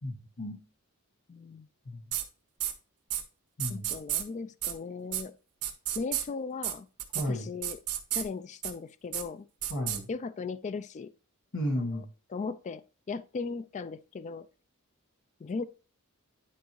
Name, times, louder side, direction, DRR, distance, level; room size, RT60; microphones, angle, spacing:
voice 1, 0.0-0.6 1.8-2.0 3.6-3.9 7.1-7.5 9.7-10.1 11.5-12.0, left 1 dB, 55° left, 1.6 m, -33 dB
voice 2, 1.3-1.7 3.7-5.3 6.0-6.9 7.3-7.8 8.1-9.5 10.1-11.1 11.9-12.0 12.3-12.8 13.1-14.5 15.4-15.6, left 4 dB, 30° left, 0.3 m, -37 dB
sound 1, 2.1-2.2 2.6-2.7 3.1-3.2 3.6-4.2 4.6-4.7 5.1-5.2 5.6-6.2 6.6-6.7 7.0-7.2 7.6-8.2 8.6-8.7 9.1-9.2 9.6-10.0, right 12 dB, 80° right, 1.2 m, -31 dB
10.0 x 4.6 x 3.1 m
head